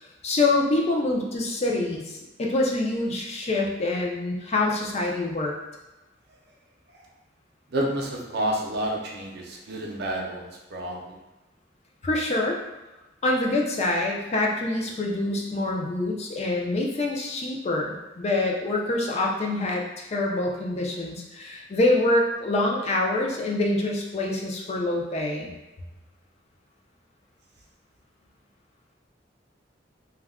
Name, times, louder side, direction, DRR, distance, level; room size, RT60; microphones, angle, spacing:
voice 1, 0.2-2.0 2.4-5.5 12.0-12.6 13.2-25.5, left 2 dB, 35° left, -1 dB, 0.4 m, -25 dB
voice 2, 7.7-11.0, right 1 dB, 60° right, -1 dB, 0.5 m, -29 dB
2.3 x 2.1 x 3.5 m, 1.0 s
head